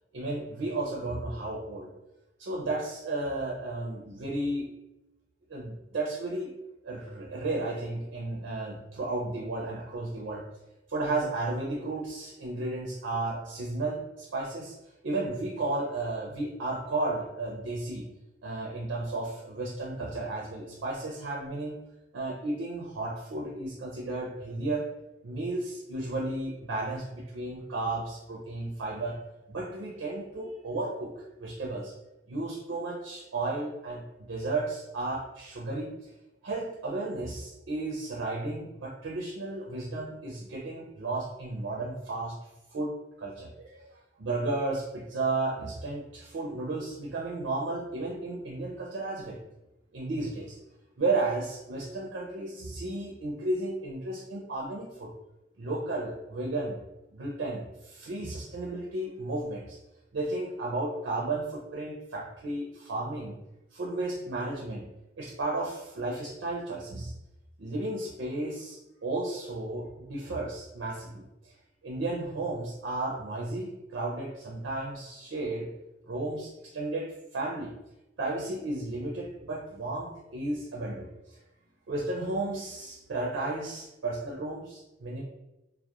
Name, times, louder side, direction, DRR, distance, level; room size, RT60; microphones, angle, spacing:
voice 1, 0.1-1.9 2.4-4.7 5.5-6.5 6.8-10.4 10.9-14.8 15.0-18.1 18.4-21.8 22.1-24.9 25.2-29.2 29.5-31.9 32.3-36.1 36.4-42.4 42.7-42.9 43.2-49.4 49.9-50.6 51.0-55.1 55.6-56.8 57.1-59.8 60.1-63.4 63.7-64.8 65.2-67.1 67.6-71.5 71.8-75.7 76.1-77.1 77.3-77.7 78.2-81.4 81.9-85.2, right 2 dB, 70° right, -3 dB, 0.4 m, -33 dB
2.8 x 2.1 x 2.3 m, 0.94 s
head